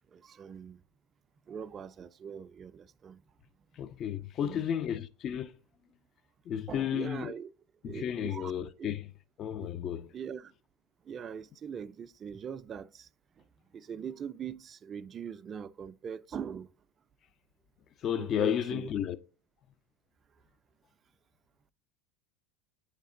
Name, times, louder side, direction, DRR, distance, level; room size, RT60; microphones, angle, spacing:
voice 1, 0.1-0.8 1.5-3.2 4.4-4.7 6.7-7.5 7.8-8.5 8.8-8.9 9.6-9.7 10.1-10.5 11.1-13.1 13.7-16.7 18.2-18.9, right 7 dB, 35° right, 0.3 m, -41 dB
voice 2, 3.7-5.5 6.5-7.3 7.8-9.1 9.4-10.1 18.0-19.2, left 9 dB, 40° left, 0.4 m, -32 dB
8.4 x 3.3 x 3.7 m
hypercardioid pair, 95°, 0 cm